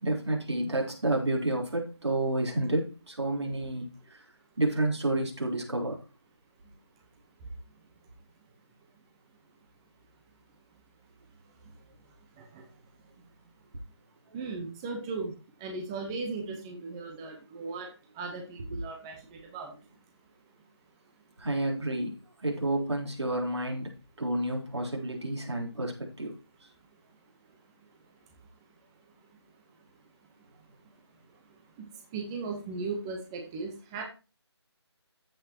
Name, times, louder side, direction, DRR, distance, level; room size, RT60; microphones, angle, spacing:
voice 1, 0.0-4.2 4.6-6.0 18.7-18.8 21.4-22.1 22.4-26.7, right 1 dB, 75° right, 4.0 m, -30 dB
voice 2, 14.3-15.3 15.6-17.9 18.2-19.7 32.1-34.0, right 4 dB, 10° right, 0.9 m, -37 dB
14.5 x 5.8 x 2.9 m
figure-of-eight pair, 170°, 15 cm